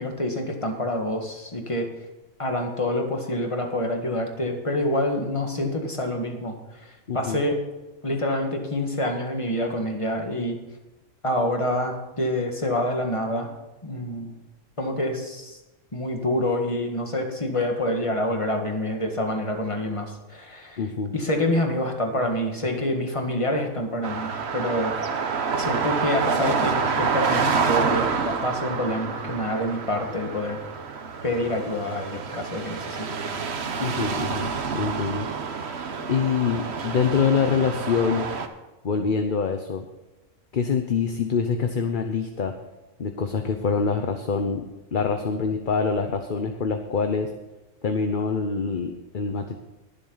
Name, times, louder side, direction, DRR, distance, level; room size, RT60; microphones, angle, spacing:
voice 1, 0.0-1.9 2.4-7.6 8.0-10.6 11.2-13.5 13.8-14.3 14.8-15.6 15.9-20.8 21.1-25.0 25.5-30.6 31.2-33.1, left 1 dB, 25° left, 3 dB, 1.8 m, -27 dB
voice 2, 7.1-7.4 20.8-21.1 33.8-35.3 36.1-38.2 38.8-39.8 40.5-42.5 43.0-44.6 44.9-47.3 47.8-49.5, left 5 dB, 45° left, 6 dB, 0.9 m, -25 dB
sound 1, 24.0-38.5, right 5 dB, 55° right, 1.2 m, -28 dB
21.5 x 7.5 x 4.0 m, 1.1 s
omnidirectional pair, 1.4 m